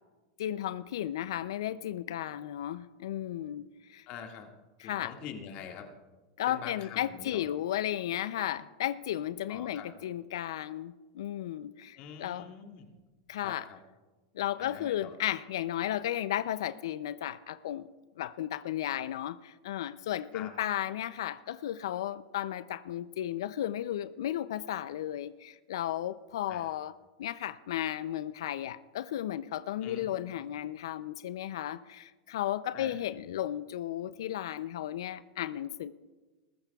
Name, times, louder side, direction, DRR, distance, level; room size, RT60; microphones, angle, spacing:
voice 1, 0.4-4.1 4.8-5.1 6.4-12.5 13.3-13.7 14.3-17.9 18.2-26.9 27.2-35.9, left 12 dB, 80° left, 16 dB, 0.4 m, -34 dB
voice 2, 4.1-4.5 4.8-5.9 6.5-7.5 9.5-9.9 12.0-12.9 13.4-13.8 14.6-15.1 20.3-20.5 26.5-26.7 29.8-30.1 32.7-33.0, left 7 dB, 50° left, 3 dB, 1.9 m, -45 dB
20.5 x 14.0 x 2.3 m, 1.2 s
hypercardioid pair, 110°, 2 cm